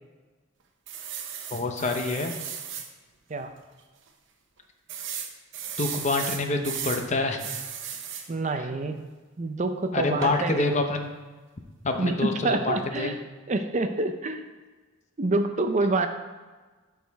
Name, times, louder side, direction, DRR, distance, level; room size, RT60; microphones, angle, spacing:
sound 1, 0.9-2.9 3.4-3.5 3.8-3.9 4.9-7.1 7.4-8.3 10.2-10.5, right 7 dB, 60° right, 0.8 m, -35 dB
voice 1, 1.5-2.3 5.8-7.6 9.9-11.1 11.8-13.1, left 3 dB, 35° left, 5 dB, 0.7 m, -27 dB
voice 2, 8.3-9.0 9.4-10.8 11.9-13.2 13.5-14.4 15.2-16.1, right 2 dB, 35° right, 7 dB, 0.5 m, -27 dB
12.0 x 4.9 x 3.4 m, 1.3 s
head